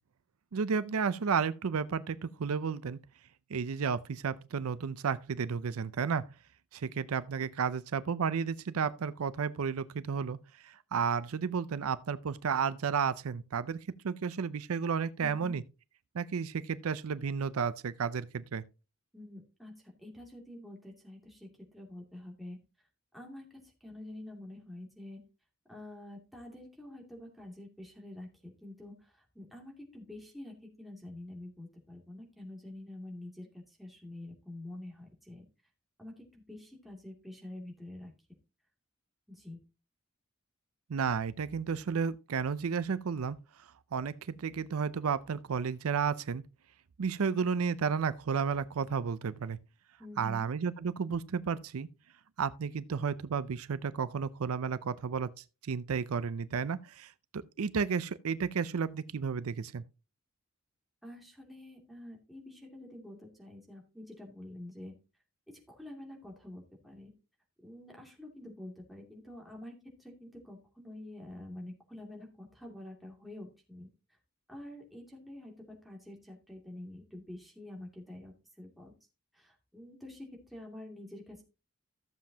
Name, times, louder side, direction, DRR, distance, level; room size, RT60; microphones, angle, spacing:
voice 1, 0.5-3.0 3.5-6.3 6.7-10.4 10.6-13.8 14.0-15.6 16.1-18.6 40.9-43.4 43.9-46.4 47.0-49.6 50.2-51.9 52.4-55.3 55.6-59.8, right 6 dB, 85° right, 0.5 m, -32 dB
voice 2, 15.2-15.6 19.1-19.7 20.0-22.6 23.1-25.2 25.7-35.4 36.0-38.1 39.3-39.6 50.0-50.5 61.0-64.9 65.5-67.1 67.6-73.9 74.5-78.9 79.3-81.4, left 1 dB, ahead, 2.5 m, -47 dB
14.0 x 7.4 x 2.8 m
head